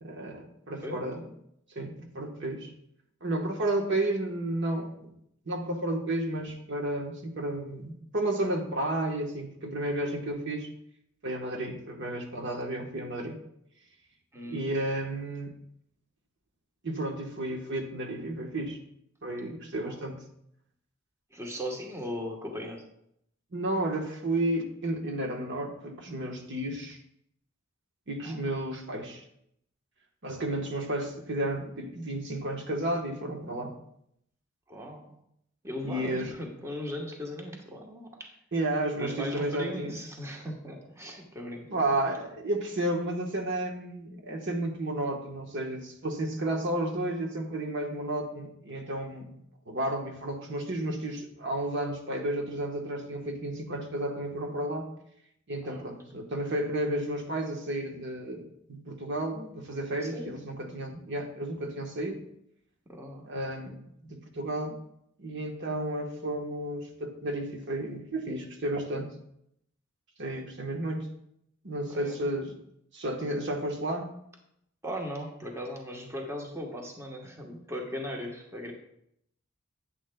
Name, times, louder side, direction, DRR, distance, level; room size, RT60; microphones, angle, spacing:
voice 1, 0.0-1.3 1.7-2.7 3.2-5.1 5.5-10.7 11.2-13.4 14.5-15.5 16.8-18.8 19.2-20.2 23.5-27.0 28.1-29.2 30.2-33.7 35.8-36.3 38.5-40.0 41.7-49.3 49.7-54.9 55.5-62.2 63.2-63.8 64.0-64.8 65.2-69.1 70.2-71.1 71.6-72.5 72.9-74.1, right 1 dB, 60° right, 2 dB, 1.2 m, -32 dB
voice 2, 21.3-22.8 28.2-28.4 34.7-35.0 35.6-38.3 38.9-41.8 55.7-55.9 60.0-60.3 62.9-63.3 71.9-72.3 74.8-78.7, equal, 15° right, 0 dB, 1.2 m, -38 dB
10.0 x 9.2 x 2.2 m, 0.74 s
head